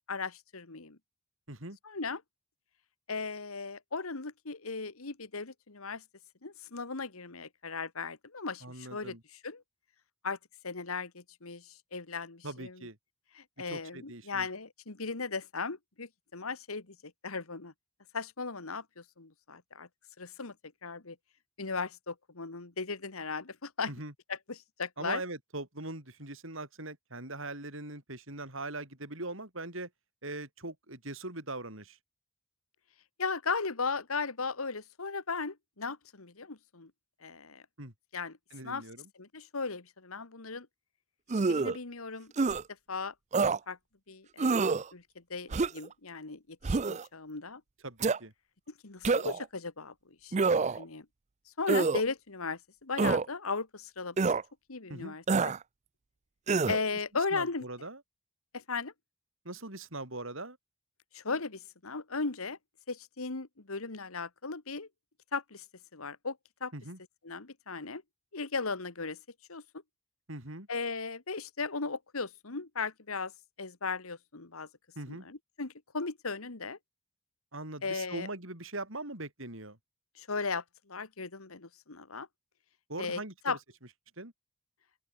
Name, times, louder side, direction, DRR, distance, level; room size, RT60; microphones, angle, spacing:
voice 1, 0.1-1.0 1.8-2.2 3.1-6.0 6.4-9.2 9.4-9.6 10.2-10.4 10.6-12.8 13.4-17.0 17.2-17.7 18.1-19.9 20.2-20.5 20.8-21.2 21.6-23.9 24.3-25.2 33.2-36.9 37.2-37.6 38.1-38.4 38.6-38.8 39.2-40.7 41.5-42.3 42.9-43.1 43.7-43.8 44.1-47.6 48.8-49.9 50.2-51.1 51.6-54.3 54.7-55.5 56.7-57.7 58.5-58.9 61.1-62.6 62.9-64.9 65.3-65.6 65.9-66.7 67.2-68.0 68.3-69.2 69.5-69.6 70.7-73.3 73.6-74.7 75.1-76.8 77.8-78.3 80.2-82.3 83.0-83.6, left 4 dB, 85° left, 1.7 m, -37 dB
voice 2, 8.6-9.2 12.4-13.0 13.7-14.5 23.9-24.1 25.0-29.9 30.2-32.0 37.8-37.9 38.5-39.1 47.8-48.3 54.9-55.2 57.1-58.0 59.4-60.6 66.7-67.0 70.3-70.7 75.0-75.3 77.5-79.8 82.9-83.6 84.2-84.3, right 2 dB, 65° right, 5.8 m, -41 dB
sound 1, 41.3-41.8 42.4-42.6 43.3-43.6 44.4-44.8 45.5-45.9 46.6-47.0 48.0-48.2 49.0-49.4 50.3-50.8 51.7-52.0 53.0-53.3 54.2-54.4 55.3-55.6 56.5-56.8, right 4 dB, 35° right, 0.4 m, -27 dB
open air
head